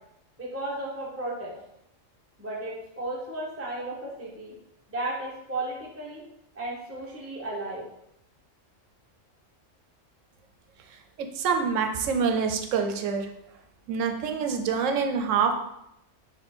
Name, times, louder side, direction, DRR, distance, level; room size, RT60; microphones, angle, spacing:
voice 1, 0.4-1.5 2.4-4.5 4.9-6.2 6.6-7.9, right 2 dB, 15° right, -4 dB, 0.6 m, -34 dB
voice 2, 11.4-13.3 13.9-15.5, right 6 dB, 80° right, 5 dB, 0.9 m, -26 dB
4.3 x 2.8 x 4.2 m, 0.79 s
omnidirectional pair, 1.3 m